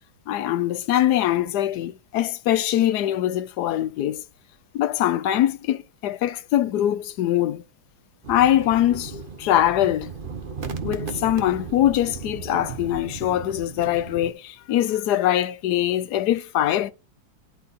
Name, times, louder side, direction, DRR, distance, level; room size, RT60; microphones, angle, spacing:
voice 1, 0.3-4.2 4.7-7.6 8.3-10.1 10.8-16.9, left 12 dB, 70° left, 1.0 m, -22 dB
sound 1, 8.2-14.3, right 5 dB, 45° right, 0.7 m, -36 dB
11.5 x 4.1 x 4.0 m
omnidirectional pair, 2.1 m